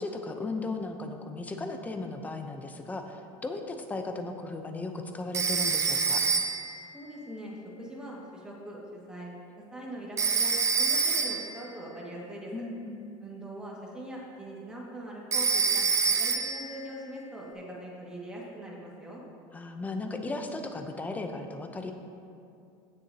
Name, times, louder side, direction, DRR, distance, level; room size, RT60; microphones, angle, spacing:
voice 1, 0.0-6.2 12.5-13.0 19.5-21.9, left 2 dB, 15° left, 5 dB, 0.6 m, -36 dB
Telephone, 5.3-6.8 10.2-11.6 15.3-16.7, right 5 dB, 25° right, 0.7 m, -26 dB
voice 2, 6.9-8.8 9.1-9.3 9.7-12.5 13.2-15.8 16.2-19.2, right 1 dB, 5° right, -4 dB, 1.8 m, -42 dB
16.5 x 7.0 x 2.8 m, 2.6 s
supercardioid pair, 145°, 12 cm